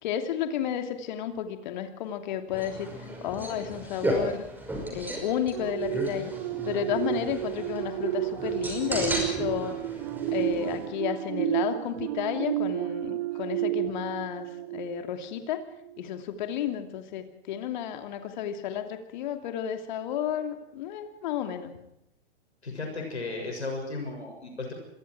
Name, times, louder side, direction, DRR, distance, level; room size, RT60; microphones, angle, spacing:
voice 1, 0.0-2.9 3.2-4.5 4.9-6.3 6.6-9.8 10.3-14.5 14.7-15.6 16.0-21.7, left 9 dB, 45° left, 6 dB, 2.8 m, -32 dB
sound 1, 2.5-10.9, equal, 5° right, 5.6 m, -35 dB
sound 2, 5.5-15.4 15.9-16.1, right 16 dB, 35° right, 0.7 m, -31 dB
voice 2, 22.6-24.7, left 3 dB, 75° left, 2 dB, 6.9 m, -35 dB
27.5 x 22.0 x 4.8 m, 0.81 s
figure-of-eight pair, 110°, 33 cm